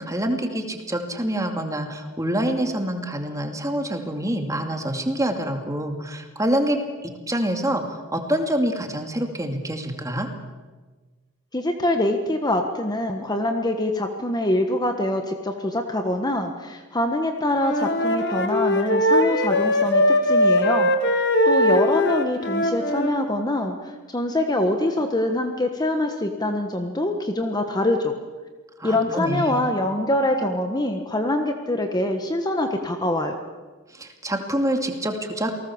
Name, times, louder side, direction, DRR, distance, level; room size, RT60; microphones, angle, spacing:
voice 1, 0.0-10.3 28.8-29.6 33.9-35.6, right 1 dB, 15° right, 5 dB, 2.4 m, -26 dB
voice 2, 11.5-20.9 21.4-28.2 28.8-33.4, left 1 dB, 20° left, 5 dB, 1.4 m, -24 dB
Wind instrument woodwind instrument, 17.5-23.2, left 1 dB, 50° left, 2.2 m, -20 dB
28.0 x 19.0 x 7.2 m, 1.3 s
head